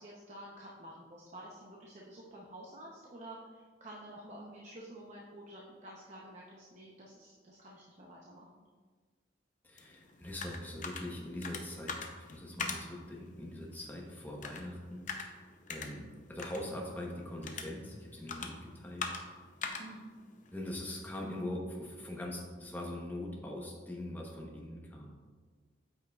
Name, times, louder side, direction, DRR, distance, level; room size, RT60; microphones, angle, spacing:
voice 1, 0.0-8.6 19.8-20.1, right 1 dB, 40° right, -3 dB, 0.7 m, -50 dB
voice 2, 9.6-15.4 15.7-19.1 20.5-25.1, left 1 dB, 10° left, -2 dB, 0.9 m, -42 dB
sound 1, 9.8-21.4, left 4 dB, 40° left, 0.6 m, -44 dB
8.6 x 5.6 x 2.3 m, 1.5 s
head